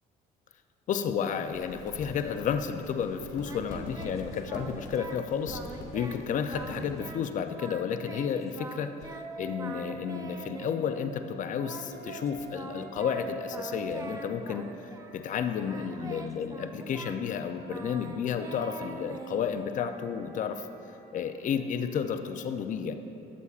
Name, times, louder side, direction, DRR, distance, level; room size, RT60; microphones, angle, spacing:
voice 1, 0.9-14.7 15.1-20.7 21.1-22.9, left 7 dB, 50° left, 8 dB, 0.5 m, -32 dB
sound 1, 1.4-7.0, left 1 dB, 85° left, 2.0 m, -44 dB
Singing, 3.4-5.2 5.5-6.2 6.5-7.2 7.5-9.3 9.6-11.0 11.6-15.2 15.5-19.9, right 3 dB, 20° right, 0.4 m, -44 dB
Wind instrument woodwind instrument, 9.1-10.9 11.5-16.3 17.0-22.2, right 4 dB, 85° right, 0.7 m, -47 dB
12.5 x 7.0 x 2.4 m, 2.8 s
cardioid pair, 110°, 17 cm